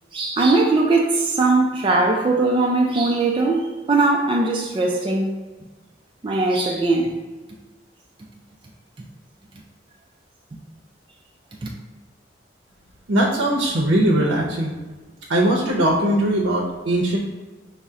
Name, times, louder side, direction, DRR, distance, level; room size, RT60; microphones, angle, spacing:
voice 1, 0.1-5.3 6.2-7.1, right 3 dB, 25° right, 0 dB, 0.3 m, -20 dB
voice 2, 13.1-14.7 15.3-17.2, right 1 dB, 85° right, -3 dB, 0.7 m, -20 dB
5.4 x 2.1 x 3.6 m, 1.2 s
head